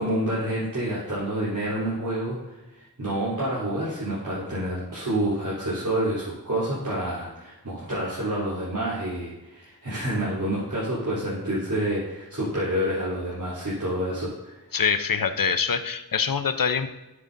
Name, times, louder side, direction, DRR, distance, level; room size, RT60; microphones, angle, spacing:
voice 1, 0.0-14.6, right 1 dB, 50° right, -9 dB, 3.6 m, -28 dB
voice 2, 14.7-16.9, left 6 dB, 60° left, 10 dB, 0.8 m, -24 dB
11.0 x 9.6 x 2.7 m, 1.1 s
wide cardioid pair, 70°, 38 cm